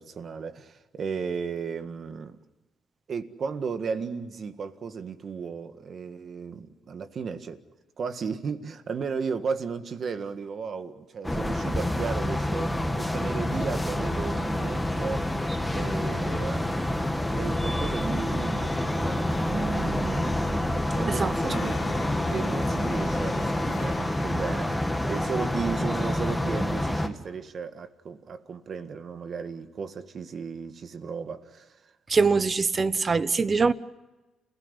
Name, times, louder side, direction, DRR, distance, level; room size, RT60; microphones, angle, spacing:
voice 1, 0.0-2.4 3.1-7.6 8.0-15.3 15.7-20.3 20.9-21.8 22.3-31.8, right 5 dB, 50° right, 1.7 m, -35 dB
sound 1, 11.2-27.1, left 1 dB, 5° left, 2.1 m, -27 dB
sound 2, 21.5-24.7, left 6 dB, 90° left, 3.4 m, -42 dB
voice 2, 32.1-33.7, right 4 dB, 35° right, 1.0 m, -23 dB
29.5 x 16.5 x 9.9 m
cardioid pair, 90°, 0 cm